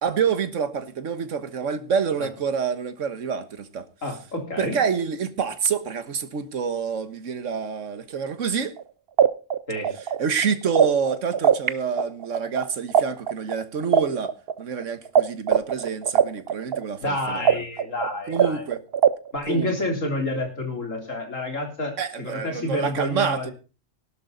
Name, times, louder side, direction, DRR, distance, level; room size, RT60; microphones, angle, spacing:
voice 1, 0.0-3.8 4.6-8.8 10.2-14.3 14.6-17.5 18.3-18.8 19.5-19.7 22.0-23.5, right 6 dB, 75° right, 1.6 m, -27 dB
voice 2, 4.0-4.8 9.7-9.9 17.0-18.7 19.3-23.5, left 1 dB, 80° left, 3.9 m, -29 dB
sound 1, 8.8-8.9 9.2-11.7 12.0-15.2 15.5-19.4, right 8 dB, 55° right, 1.0 m, -20 dB
17.5 x 11.5 x 3.9 m
omnidirectional pair, 1.3 m